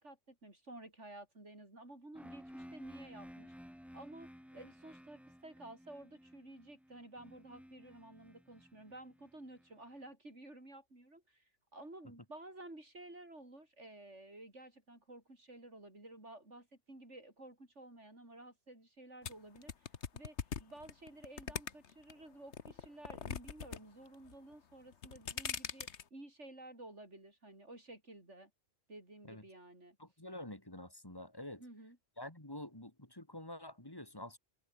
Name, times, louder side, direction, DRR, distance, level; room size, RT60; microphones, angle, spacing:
voice 1, 0.0-3.5 3.9-28.5 28.9-30.0 31.6-32.0, right 1 dB, 70° right, 7.0 m, -53 dB
sound 1, 2.1-10.0, equal, ahead, 2.5 m, -55 dB
sound 2, 19.2-22.1 22.5-23.8 24.1-24.5 24.9-26.0, left 7 dB, 65° left, 1.5 m, -41 dB
voice 2, 30.0-31.6 32.2-34.4, left 1 dB, 20° left, 3.3 m, -48 dB
omnidirectional pair, 1.3 m